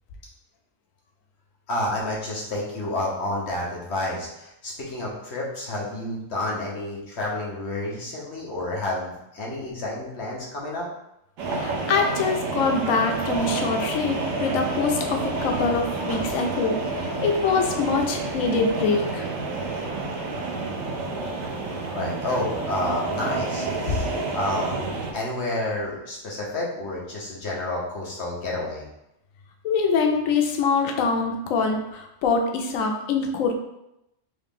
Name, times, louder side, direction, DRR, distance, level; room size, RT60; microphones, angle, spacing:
voice 1, 1.7-10.9 21.9-28.9, left 1 dB, 60° left, -3 dB, 1.1 m, -30 dB
sound 1, 11.4-25.1, right 3 dB, 80° right, 1.1 m, -29 dB
voice 2, 11.5-19.3 23.9-24.0 29.6-33.5, left 4 dB, 85° left, 3 dB, 1.0 m, -24 dB
3.8 x 2.5 x 3.5 m, 0.85 s
omnidirectional pair, 1.4 m